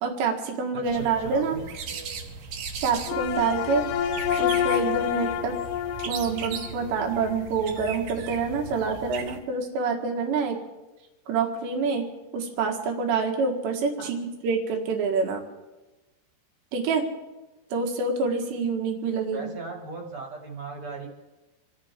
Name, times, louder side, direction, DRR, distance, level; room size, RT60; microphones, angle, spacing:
voice 1, 0.0-1.6 2.8-3.9 4.4-5.6 6.0-10.6 11.3-12.1 12.3-15.4 16.7-17.0 17.7-19.5, right 4 dB, 85° right, 3 dB, 3.9 m, -27 dB
voice 2, 0.7-1.7 14.0-14.1 19.3-21.1, right 4 dB, 40° right, 1 dB, 2.3 m, -37 dB
sound 1, 0.8-9.4, right 5 dB, 65° right, 2.6 m, -38 dB
sound 2, 3.1-7.4, left 10 dB, 90° left, 2.9 m, -28 dB
27.5 x 14.0 x 3.6 m, 1.1 s
omnidirectional pair, 4.9 m